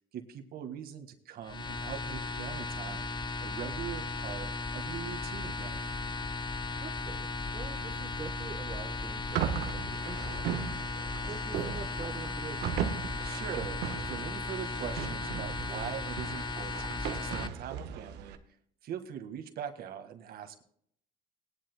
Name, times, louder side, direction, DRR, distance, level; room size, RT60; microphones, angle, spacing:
voice 1, 0.1-3.1 3.4-5.9 13.2-18.4 18.8-20.6, right 9 dB, 65° right, 6 dB, 1.7 m, -42 dB
sound 1, 1.4-17.5, left 3 dB, 25° left, 0.7 m, -36 dB
voice 2, 6.8-10.6 11.3-12.8, right 6 dB, 35° right, 3 dB, 1.1 m, -45 dB
sound 2, 9.3-18.4, right 9 dB, 80° right, 1.2 m, -37 dB
19.5 x 11.0 x 2.2 m, 0.66 s
cardioid pair, 110°, 17 cm